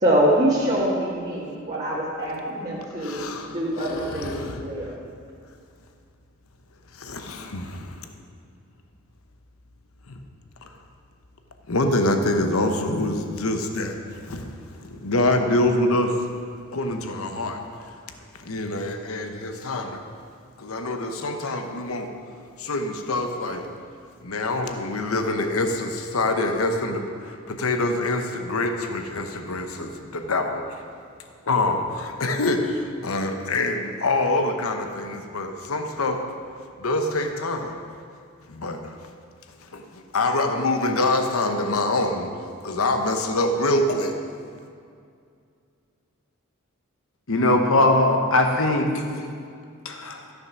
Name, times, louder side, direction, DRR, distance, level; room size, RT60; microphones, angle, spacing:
voice 1, 0.0-4.9, right 1 dB, 35° right, -8 dB, 1.7 m, -24 dB
voice 2, 3.0-5.0 6.9-8.1 10.1-10.2 11.7-14.5 14.8-16.2 16.7-17.6 18.4-20.0 20.6-22.1 22.6-23.7 24.2-30.6 31.5-36.2 36.8-37.8 38.5-38.9 39.7-44.2, left 2 dB, 85° left, 5 dB, 0.9 m, -25 dB
voice 3, 47.3-49.0 49.8-50.2, left 2 dB, 65° left, 3 dB, 1.2 m, -20 dB
13.5 x 6.6 x 5.9 m, 2.3 s
head